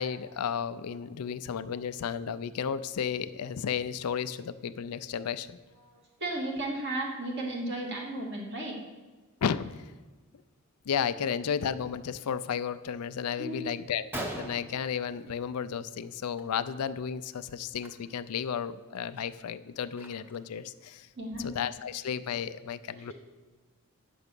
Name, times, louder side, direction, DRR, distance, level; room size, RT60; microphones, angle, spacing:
voice 1, 0.0-5.6 9.4-9.7 10.9-14.0 14.3-21.1 21.4-23.1, left 7 dB, 90° left, 14 dB, 0.4 m, -33 dB
voice 2, 5.8-8.8 13.4-13.8 21.2-21.5 23.0-23.1, right 1 dB, 50° right, -2 dB, 2.3 m, -35 dB
Gunshot gunfire, 14.1-15.7 16.1-16.4 16.7-16.9 17.7-17.9 18.4-18.5 18.9-20.5, right 1 dB, 10° right, 0.9 m, -41 dB
9.2 x 6.0 x 6.8 m, 1.3 s
head